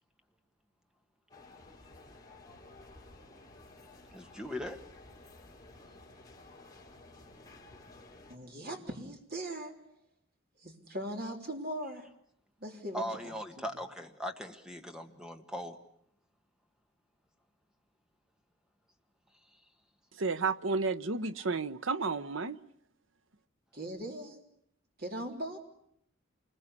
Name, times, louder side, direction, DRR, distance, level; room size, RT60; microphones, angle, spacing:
sound 1, 1.3-8.4, left 2 dB, 20° left, 3.5 m, -54 dB
voice 1, 4.1-4.8 12.9-15.8, equal, 5° right, 1.7 m, -39 dB
voice 2, 8.3-9.7 10.6-12.1 12.6-13.3 23.7-24.4 25.0-25.6, right 1 dB, 50° right, 3.7 m, -39 dB
voice 3, 20.2-22.6, right 4 dB, 75° right, 0.9 m, -32 dB
28.0 x 21.0 x 8.3 m
head